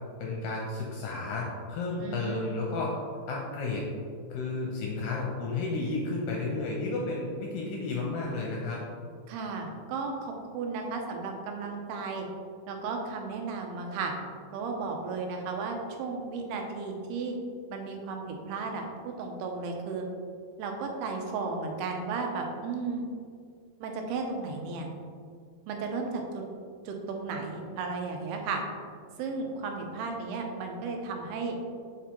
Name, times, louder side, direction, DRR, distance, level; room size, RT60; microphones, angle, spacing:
voice 1, 0.2-2.9 3.3-3.9 4.3-8.8, left 3 dB, 80° left, -2 dB, 2.2 m, -32 dB
voice 2, 2.0-2.6 9.3-12.3 12.7-14.1 14.5-17.3 17.7-18.9 19.2-20.0 20.6-23.0 23.8-24.9 25.7-26.4 26.9-28.6 29.2-31.6, right 4 dB, 85° right, 2 dB, 2.8 m, -34 dB
7.1 x 4.6 x 3.0 m, 2.1 s
omnidirectional pair, 4.5 m